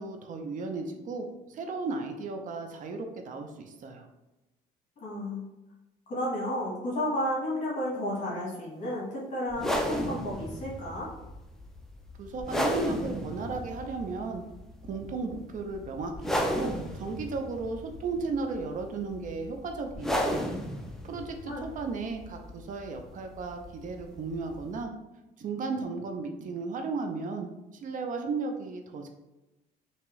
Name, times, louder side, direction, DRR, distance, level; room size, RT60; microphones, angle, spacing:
voice 1, 0.0-4.1 12.2-14.4 14.8-20.4 21.0-24.9 25.4-29.1, right 4 dB, 50° right, 4 dB, 0.5 m, -35 dB
voice 2, 5.0-5.4 6.1-11.1 21.5-21.6, left 1 dB, 45° left, -5 dB, 1.3 m, -32 dB
sound 1, 9.5-24.8, equal, ahead, 0.4 m, -35 dB
3.4 x 2.9 x 3.1 m, 1.0 s
cardioid pair, 110°, 17 cm